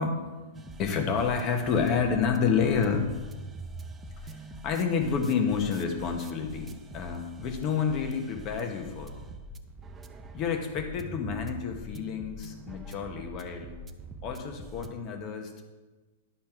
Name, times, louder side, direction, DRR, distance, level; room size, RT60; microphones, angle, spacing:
voice 1, 0.0-3.4 4.2-9.1 10.3-13.7 14.2-15.6, left 6 dB, 30° left, 4 dB, 1.2 m, -29 dB
sound 1, 0.5-14.9, right 1 dB, 15° right, 0.5 m, -44 dB
10.5 x 4.2 x 6.0 m, 1.2 s
hypercardioid pair, 150°, 0 cm